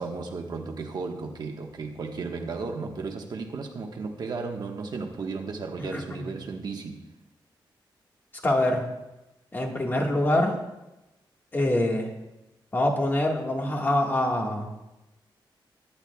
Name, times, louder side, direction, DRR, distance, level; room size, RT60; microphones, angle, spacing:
voice 1, 0.0-7.0, right 4 dB, 55° right, 1.3 m, -34 dB
voice 2, 5.9-6.3 8.4-8.8 9.5-10.5 11.5-12.1 12.7-14.9, left 1 dB, 25° left, 1.7 m, -25 dB
23.0 x 10.5 x 2.3 m
wide cardioid pair, 170°, 8 cm